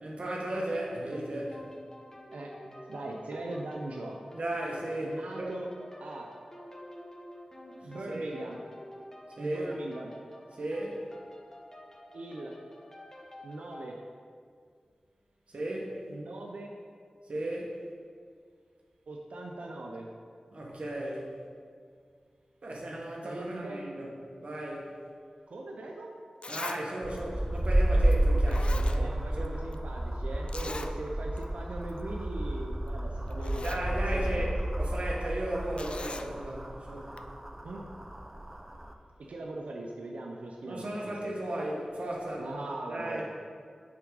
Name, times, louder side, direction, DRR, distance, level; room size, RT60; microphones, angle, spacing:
voice 1, 0.0-1.6 4.3-5.5 7.8-8.3 9.4-9.7 10.6-11.0 15.5-16.0 17.3-17.8 20.5-21.3 22.6-24.1 24.4-24.9 26.5-29.1 29.4-29.5 30.5-30.8 33.6-37.2 40.7-42.4 42.9-43.2, right 1 dB, 65° right, -2 dB, 1.3 m, -35 dB
sound 1, 1.1-13.9, left 1 dB, 25° left, 0.9 m, -50 dB
voice 2, 2.3-4.2 5.0-5.7 6.0-6.3 7.8-8.6 9.4-10.1 12.1-12.5 13.4-14.0 16.1-16.7 19.1-20.1 23.2-23.8 25.5-26.1 28.9-34.5 37.6-37.8 39.3-41.3 42.4-43.3, right 2 dB, 85° right, 0 dB, 0.5 m, -40 dB
Zipper (clothing), 25.9-26.0 26.4-26.8 27.2-27.3 28.1-28.2 28.5-29.5 29.7-29.8 30.5-30.9 31.4-31.5 31.8-32.0 32.9-33.0 33.3-33.9 35.8-36.3 37.2-37.3, left 3 dB, 55° left, 0.3 m, -40 dB
sound 2, 27.0-38.9, right 1 dB, 20° right, 0.5 m, -31 dB
7.3 x 3.5 x 4.7 m, 2.1 s
cardioid pair, 45°, 2 cm